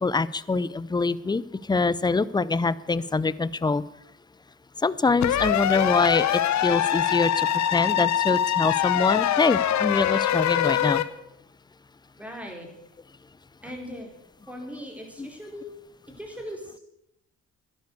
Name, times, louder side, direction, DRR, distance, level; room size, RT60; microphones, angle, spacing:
voice 1, 0.0-1.4 1.7-3.8 4.8-11.0 15.2-15.3, left 3 dB, 15° left, 18 dB, 0.6 m, -24 dB
sound 1, 5.2-11.0, left 11 dB, 65° left, 1.0 m, -23 dB
voice 2, 12.1-12.7 13.6-14.1 14.5-15.7 16.2-16.8, equal, 5° right, 1 dB, 4.8 m, -39 dB
12.0 x 11.5 x 8.2 m, 0.82 s
cardioid pair, 90°, 30 cm